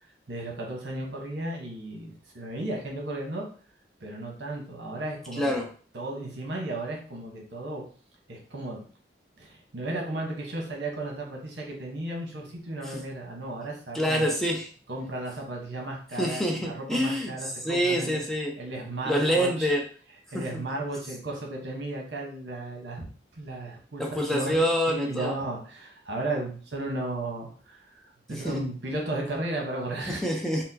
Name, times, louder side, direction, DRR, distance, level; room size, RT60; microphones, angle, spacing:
voice 1, 0.3-3.5 4.0-5.6 5.9-7.8 8.3-8.8 9.4-14.3 14.9-18.2 18.6-19.7 20.3-23.0 23.3-30.3, right 2 dB, 70° right, 0 dB, 1.0 m, -34 dB
voice 2, 5.3-5.7 12.9-13.0 13.9-14.7 16.2-18.5 19.0-19.8 20.3-20.6 24.0-25.3 28.3-28.6 30.1-30.6, equal, ahead, 1 dB, 0.5 m, -26 dB
4.2 x 2.0 x 2.7 m, 0.42 s
head